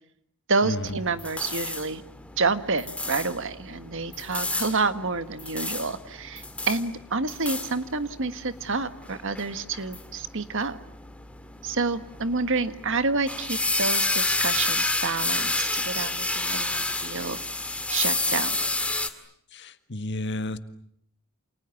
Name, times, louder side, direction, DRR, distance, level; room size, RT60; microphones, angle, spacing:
voice 1, 0.5-2.0 2.4-10.8 11.6-17.4 17.9-18.6, right 3 dB, 60° right, 11 dB, 1.6 m, -28 dB
sound 1, 0.9-19.1, left 2 dB, 5° left, 2.1 m, -30 dB
voice 2, 19.5-20.6, left 1 dB, 55° left, 10 dB, 1.7 m, -31 dB
29.0 x 28.0 x 7.2 m, 0.70 s
head